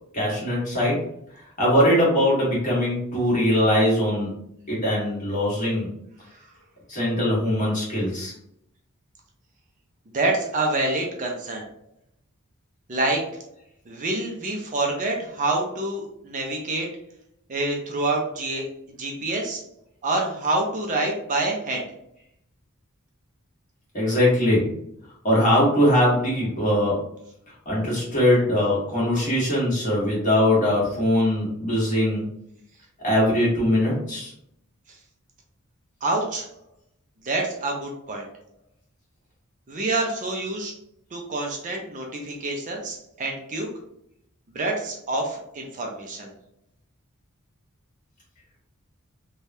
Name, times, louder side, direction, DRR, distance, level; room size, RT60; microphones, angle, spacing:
voice 1, 0.1-1.0 1.3-4.3 4.7-5.9 6.9-8.3 23.9-24.7 25.2-27.0 27.6-32.3 33.0-34.3, left 1 dB, 35° left, -6 dB, 1.4 m, -21 dB
voice 2, 10.1-11.6 12.9-13.2 13.9-16.9 17.5-18.7 19.0-19.6 20.0-21.9 36.0-36.5 37.2-38.2 39.7-40.7 41.1-43.7 44.5-46.3, right 2 dB, 35° right, 0 dB, 0.5 m, -27 dB
3.3 x 2.3 x 2.7 m, 0.73 s
head